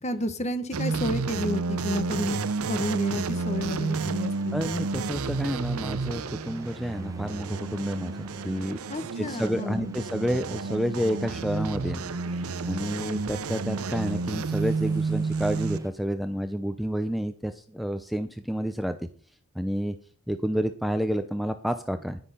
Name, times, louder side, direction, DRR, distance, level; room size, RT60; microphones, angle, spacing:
voice 1, 0.0-4.6 8.9-10.0, left 1 dB, 30° left, 12 dB, 1.2 m, -31 dB
sound 1, 0.7-15.8, right 4 dB, 80° right, 0.7 m, -31 dB
sound 2, 2.6-15.9, right 1 dB, 15° right, 1.4 m, -47 dB
voice 2, 4.5-8.8 9.2-12.0 12.7-19.0 19.6-20.0 20.3-22.2, equal, ahead, 9 dB, 0.6 m, -29 dB
10.5 x 10.5 x 5.6 m, 0.44 s
head